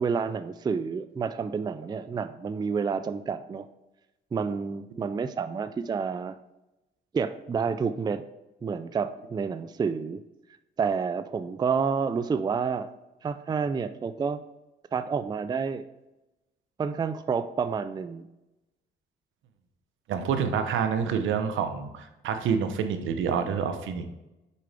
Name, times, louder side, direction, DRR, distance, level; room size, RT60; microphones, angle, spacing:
voice 1, 0.0-3.7 4.3-6.4 7.1-8.2 8.6-10.2 10.8-12.9 13.2-14.4 14.9-15.8 16.8-18.2, right 5 dB, 20° right, 11 dB, 0.3 m, -29 dB
voice 2, 20.1-24.1, right 7 dB, 80° right, 8 dB, 0.8 m, -27 dB
6.8 x 4.9 x 3.4 m, 0.97 s
cardioid pair, 90°, 20 cm